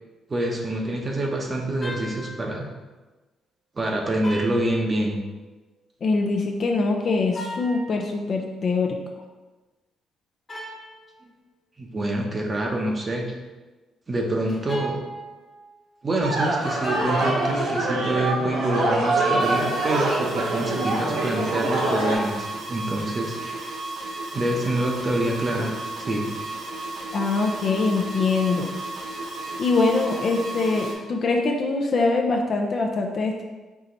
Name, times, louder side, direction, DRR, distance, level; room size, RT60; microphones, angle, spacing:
voice 1, 0.3-2.7 3.8-5.2 11.8-13.3 14.1-15.0 16.0-23.7 24.3-26.3, right 1 dB, 30° right, 1 dB, 0.8 m, -26 dB
sound 1, 1.8-2.6 4.2-5.4 7.3-8.2 10.5-11.1 14.5-15.8 16.8-17.6, left 1 dB, 25° left, 1.0 m, -38 dB
voice 2, 6.0-9.0 27.1-28.7 29.6-33.4, left 3 dB, 50° left, 2 dB, 0.5 m, -23 dB
sound 2, 16.2-22.2, right 2 dB, 90° right, 1.1 m, -24 dB
sound 3, 19.4-30.9, right 2 dB, 70° right, 0.8 m, -34 dB
4.7 x 2.8 x 3.9 m, 1.2 s
cardioid pair, 90°, 0 cm